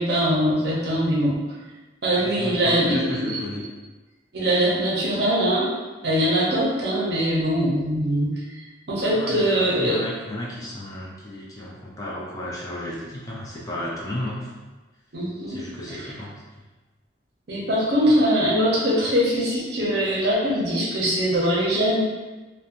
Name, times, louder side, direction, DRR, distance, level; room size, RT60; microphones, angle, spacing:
voice 1, 0.0-1.3 2.0-3.3 4.3-5.7 6.0-8.3 8.9-10.0 15.1-15.6 17.5-22.0, equal, 60° right, -5 dB, 0.7 m, -22 dB
voice 2, 2.2-3.6 9.1-14.5 15.5-16.3, left 1 dB, 20° left, -5 dB, 0.4 m, -33 dB
2.9 x 2.1 x 2.5 m, 1.2 s
head